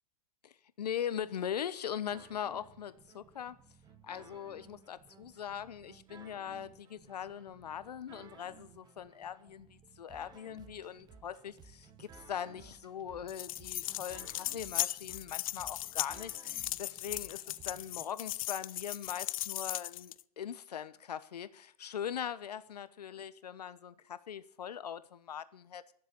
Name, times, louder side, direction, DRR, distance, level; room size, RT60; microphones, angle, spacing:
voice 1, 0.4-3.6 4.0-25.9, left 9 dB, 90° left, 1.0 m, -41 dB
sound 1, 2.1-18.1, right 6 dB, 20° right, 1.1 m, -57 dB
sound 2, 13.3-20.2, left 15 dB, 60° left, 0.5 m, -38 dB
12.0 x 7.4 x 8.5 m
hypercardioid pair, 130°, 20 cm